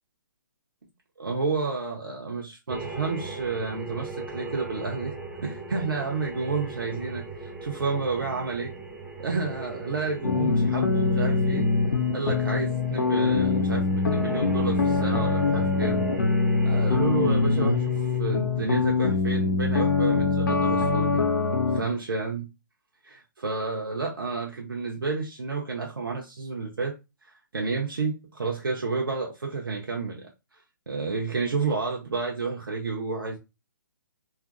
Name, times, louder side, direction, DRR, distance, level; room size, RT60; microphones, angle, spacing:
voice 1, 1.2-5.1 5.4-8.7 9.2-11.7 12.1-16.1 16.6-21.3 21.8-22.5 23.0-27.0 27.2-30.3 30.9-33.4, right 4 dB, 90° right, 0.6 m, -30 dB
sound 1, 2.7-18.2, right 3 dB, 5° right, 0.4 m, -39 dB
sound 2, 10.2-21.8, left 4 dB, 75° left, 0.7 m, -24 dB
2.9 x 2.4 x 2.4 m
hypercardioid pair, 145°, 11 cm